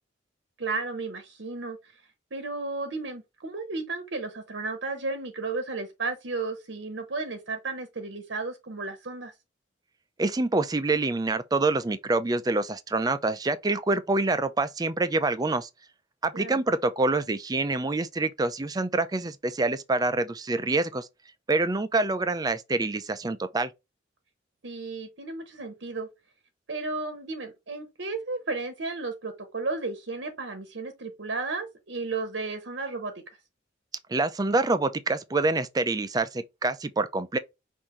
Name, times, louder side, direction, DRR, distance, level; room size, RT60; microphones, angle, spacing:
voice 1, 0.6-1.8 2.3-9.3 16.3-16.6 24.6-26.1 26.7-33.1, right 3 dB, 80° right, 1.0 m, -33 dB
voice 2, 10.2-15.7 16.2-21.1 21.5-23.7 34.1-37.4, right 3 dB, 20° right, 0.4 m, -26 dB
5.5 x 2.6 x 3.1 m
head